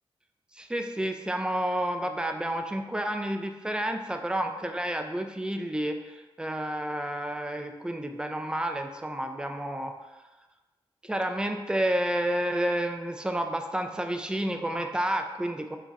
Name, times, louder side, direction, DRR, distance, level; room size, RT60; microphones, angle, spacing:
voice 1, 0.5-9.9 11.0-15.8, right 1 dB, 10° right, 5 dB, 0.3 m, -30 dB
3.9 x 2.1 x 2.4 m, 1.2 s
cardioid pair, 50°, 10 cm